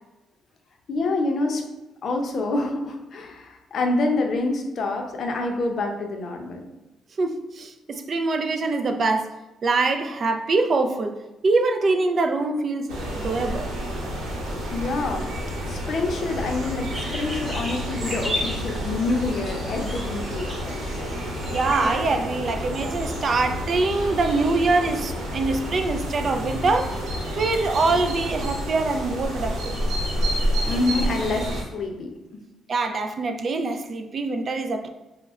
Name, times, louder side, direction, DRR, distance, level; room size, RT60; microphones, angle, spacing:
voice 1, 0.9-1.6 2.0-6.6 14.7-21.0 30.7-32.1, left 2 dB, 60° left, 3 dB, 0.6 m, -27 dB
voice 2, 7.2-9.3 9.6-11.2 11.4-13.7 21.5-27.0 27.4-29.7 32.7-34.9, right 3 dB, 45° right, 6 dB, 0.4 m, -24 dB
sound 1, 12.9-31.6, equal, 85° right, 0.8 m, -29 dB
sound 2, 16.9-21.9, equal, 20° right, 1.1 m, -34 dB
4.9 x 2.1 x 2.4 m, 1.1 s
cardioid pair, 90°, 0 cm